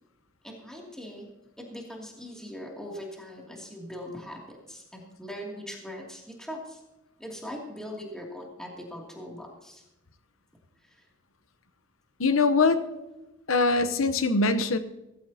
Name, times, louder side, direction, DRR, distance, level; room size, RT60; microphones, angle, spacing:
voice 1, 0.4-1.3 1.6-6.8 7.2-9.8 10.8-11.0 12.9-13.2, equal, 5° left, -2 dB, 2.5 m, -41 dB
voice 2, 12.2-12.9 13.5-14.8, left 3 dB, 80° left, 10 dB, 0.9 m, -22 dB
17.0 x 15.0 x 2.8 m, 0.97 s
head